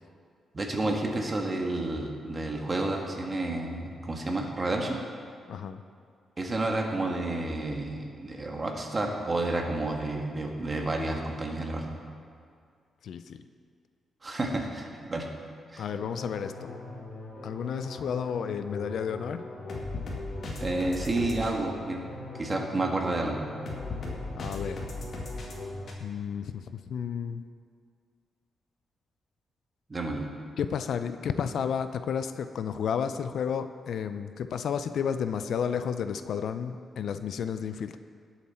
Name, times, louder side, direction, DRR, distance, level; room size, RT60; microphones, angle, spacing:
voice 1, 0.5-5.0 6.4-11.9 14.2-15.3 15.7-15.8 20.6-22.0 22.4-23.4 29.9-30.3, right 2 dB, 25° right, 1 dB, 1.6 m, -30 dB
voice 2, 5.5-5.8 13.0-13.4 15.8-16.7 17.4-19.5 24.3-24.8 26.0-27.4 30.6-38.0, left 7 dB, 65° left, 10 dB, 0.5 m, -32 dB
sound 1, 15.8-25.9, left 2 dB, 50° left, 2.1 m, -38 dB
19.0 x 7.4 x 4.3 m, 2.2 s
cardioid pair, 135°, 0 cm